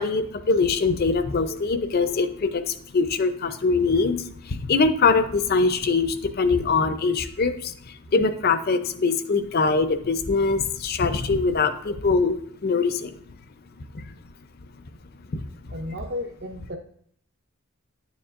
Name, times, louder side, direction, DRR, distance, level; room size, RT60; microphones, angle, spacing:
voice 1, 0.0-7.7 8.1-12.4 12.6-13.1 13.9-14.0 15.3-15.4, left 4 dB, 45° left, 10 dB, 0.5 m, -23 dB
voice 2, 15.7-16.8, left 1 dB, 50° right, 2 dB, 0.6 m, -33 dB
9.8 x 7.0 x 2.5 m, 0.65 s
head